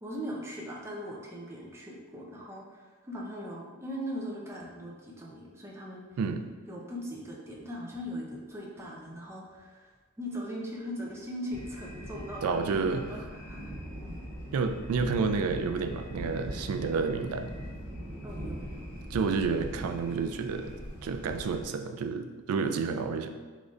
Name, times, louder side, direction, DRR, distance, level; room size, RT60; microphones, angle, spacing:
voice 1, 0.0-6.0 6.7-9.9 10.2-13.8 18.2-18.9, equal, 10° right, -3 dB, 0.4 m, -40 dB
sound 1, 11.5-21.7, equal, 55° right, 1.4 m, -41 dB
voice 2, 12.4-13.1 14.5-17.5 19.1-20.7 21.0-23.3, right 5 dB, 85° right, 7 dB, 0.3 m, -30 dB
3.7 x 3.1 x 2.5 m, 1.4 s
head